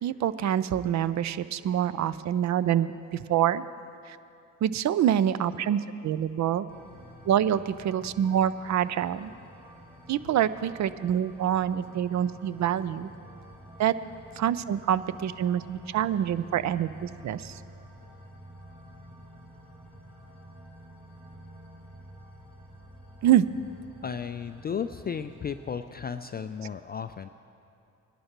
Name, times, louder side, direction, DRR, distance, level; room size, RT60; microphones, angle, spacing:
voice 1, 0.0-3.6 4.1-4.2 4.6-6.7 7.3-9.3 10.1-13.1 13.8-14.0 14.3-17.6 23.2-23.5, right 10 dB, 50° right, 15 dB, 0.5 m, -26 dB
sound 1, 6.7-25.8, equal, 15° right, 2.8 m, -49 dB
voice 2, 24.0-27.3, left 7 dB, 25° left, 9 dB, 0.3 m, -34 dB
19.0 x 11.0 x 3.0 m, 2.6 s
supercardioid pair, 55°, 38 cm